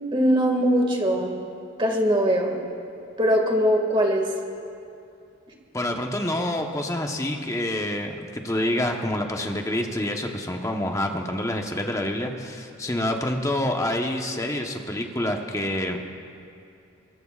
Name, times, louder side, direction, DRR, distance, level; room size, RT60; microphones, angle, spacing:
voice 1, 0.1-1.4 1.8-2.6 3.2-4.3, equal, 25° right, 1 dB, 2.1 m, -21 dB
voice 2, 5.7-16.0, left 1 dB, 15° left, 3 dB, 1.1 m, -27 dB
23.5 x 22.5 x 2.5 m, 2.6 s
head